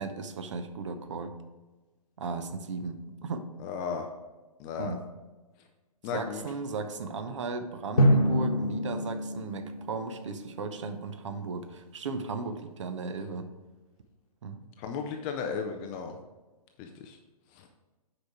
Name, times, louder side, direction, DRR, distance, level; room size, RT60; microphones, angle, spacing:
voice 1, 0.0-1.3 2.2-3.5 4.8-5.0 6.1-13.5 14.4-14.6, right 4 dB, 50° right, 8 dB, 0.8 m, -36 dB
voice 2, 3.6-4.1 4.6-5.0 6.0-6.4 14.8-16.2 16.8-17.2 17.5-17.7, left 6 dB, 15° left, 4 dB, 0.3 m, -35 dB
Drum, 8.0-10.7, equal, 70° left, 1.0 m, -26 dB
8.2 x 5.0 x 4.6 m, 1.2 s
figure-of-eight pair, 125°, 20 cm